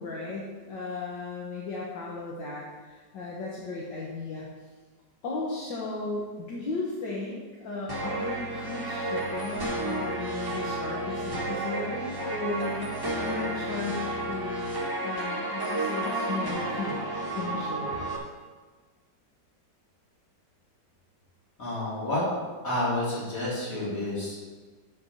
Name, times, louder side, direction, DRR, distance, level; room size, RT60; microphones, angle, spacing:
voice 1, 0.0-4.5 5.2-14.8 15.0-17.0 17.4-18.0, left 3 dB, 75° left, -4 dB, 1.9 m, -35 dB
sound 1, 7.9-18.2, right 2 dB, 15° right, 1.2 m, -31 dB
voice 2, 21.6-22.2 22.6-24.4, left 1 dB, 45° left, -8 dB, 3.8 m, -29 dB
7.8 x 5.2 x 7.1 m, 1.4 s
omnidirectional pair, 2.0 m